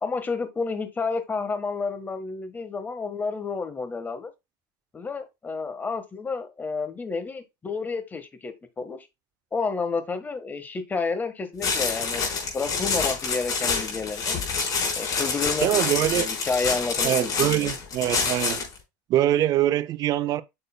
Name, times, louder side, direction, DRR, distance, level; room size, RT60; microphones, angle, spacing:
voice 1, 0.0-4.3 4.9-9.0 9.5-12.3 12.5-14.4 15.0-17.7, left 4 dB, 15° left, 1.5 m, -30 dB
sound 1, 11.6-18.8, left 5 dB, 35° left, 4.3 m, -27 dB
voice 2, 15.6-16.3 17.0-18.7 19.1-20.4, right 12 dB, 40° right, 0.6 m, -23 dB
8.6 x 6.6 x 2.2 m
supercardioid pair, 135°, 10 cm